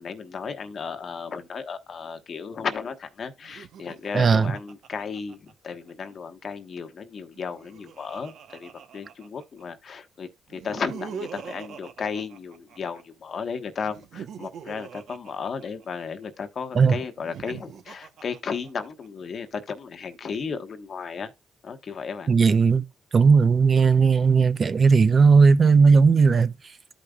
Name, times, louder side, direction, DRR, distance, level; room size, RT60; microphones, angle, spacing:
voice 1, 0.0-21.3 21.6-22.3, left 5 dB, 50° left, 1.1 m, -34 dB
Laughter, 3.4-5.9 7.2-9.6 10.5-13.0 13.8-16.3 17.1-19.1, right 7 dB, 70° right, 1.0 m, -42 dB
voice 2, 4.1-4.5 16.8-17.0 22.3-22.8 23.1-26.5, right 5 dB, 40° right, 0.6 m, -17 dB
13.5 x 5.2 x 2.3 m
cardioid pair, 90°, 0 cm